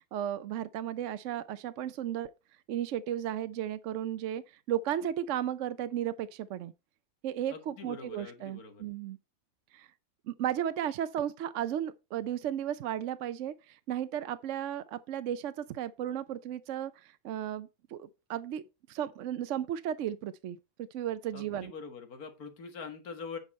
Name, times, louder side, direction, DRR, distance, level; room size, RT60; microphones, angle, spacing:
voice 1, 0.0-2.3 2.7-4.4 4.7-6.7 7.2-9.2 9.7-9.9 10.3-16.9 17.2-18.6 18.9-20.6 20.9-21.7, right 10 dB, 65° right, 0.8 m, -34 dB
voice 2, 7.5-8.8 21.3-23.4, left 5 dB, 90° left, 2.0 m, -44 dB
9.0 x 5.2 x 4.2 m
omnidirectional pair, 1.5 m